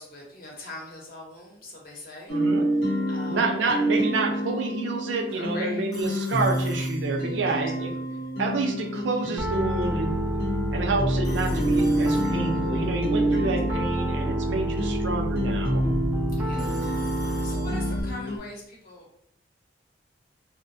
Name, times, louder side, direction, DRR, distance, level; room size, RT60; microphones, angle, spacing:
voice 1, 0.0-2.4 2.7-3.5 5.3-5.8 7.4-8.3 13.5-14.1 16.3-16.8 17.2-19.2, left 1 dB, 50° left, -2 dB, 0.8 m, -43 dB
sound 1, 2.3-18.4, right 1 dB, 90° left, 0.9 m, -28 dB
voice 2, 2.3-2.7 3.3-7.9 8.4-10.2 10.7-15.9, right 3 dB, 70° right, 3 dB, 0.4 m, -28 dB
Telephone, 5.9-7.7 11.2-12.9 16.6-18.3, equal, 20° left, 0.8 m, -45 dB
Piano, 9.4-18.0, right 1 dB, 10° right, 0.4 m, -28 dB
2.5 x 2.1 x 2.6 m, 0.69 s
head